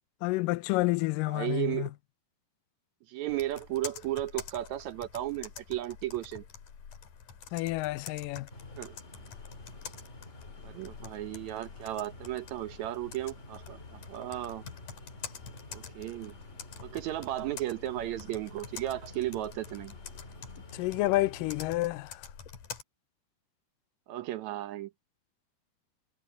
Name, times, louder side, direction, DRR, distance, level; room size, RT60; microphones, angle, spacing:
voice 1, 0.2-1.9 7.5-8.5 20.7-22.2, left 19 dB, 85° left, 2.0 m, -29 dB
voice 2, 1.3-1.9 3.1-6.4 8.8-8.9 10.6-14.6 15.7-16.3 16.8-19.9 24.1-24.9, right 14 dB, 80° right, 1.6 m, -35 dB
Computer keyboard, 3.3-22.8, left 7 dB, 55° left, 3.9 m, -47 dB
sound 1, 8.5-21.8, left 1 dB, 20° left, 2.5 m, -50 dB
omnidirectional pair, 4.5 m